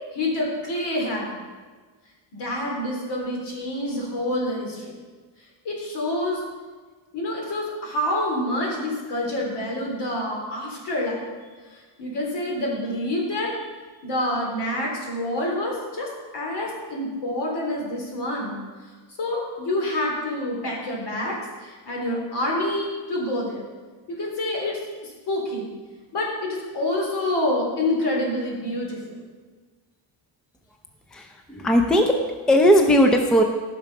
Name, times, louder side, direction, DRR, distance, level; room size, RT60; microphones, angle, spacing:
voice 1, 0.1-1.3 2.3-5.0 5.6-6.4 7.1-11.3 11.7-13.7 14.0-18.6 19.2-23.7 24.2-25.7 26.1-29.3, left 1 dB, 60° left, -1 dB, 3.4 m, -27 dB
voice 2, 31.1-32.2 32.5-33.4, equal, ahead, 4 dB, 0.5 m, -18 dB
14.0 x 5.9 x 5.8 m, 1.4 s
cardioid pair, 165°, 46 cm